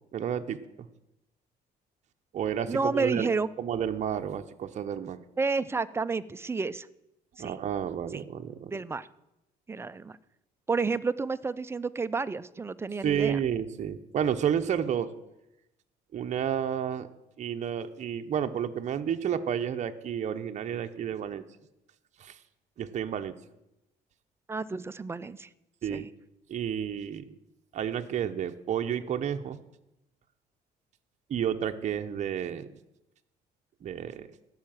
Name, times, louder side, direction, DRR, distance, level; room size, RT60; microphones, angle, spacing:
voice 1, 0.1-0.6 2.3-3.3 3.6-5.2 7.4-8.7 13.0-15.1 16.1-17.1 17.4-21.4 22.2-22.4 22.8-23.4 25.8-26.1 26.5-27.3 27.7-29.6 31.3-32.8 33.8-34.3, right 8 dB, 45° right, 6 dB, 0.7 m, -31 dB
voice 2, 2.7-3.5 5.4-6.9 7.4-7.6 8.1-8.2 8.7-9.1 9.7-10.2 10.7-13.4 24.5-25.5 25.9-26.0, right 4 dB, 15° right, 14 dB, 0.4 m, -30 dB
13.0 x 5.7 x 7.6 m, 0.90 s
cardioid pair, 110°, 17 cm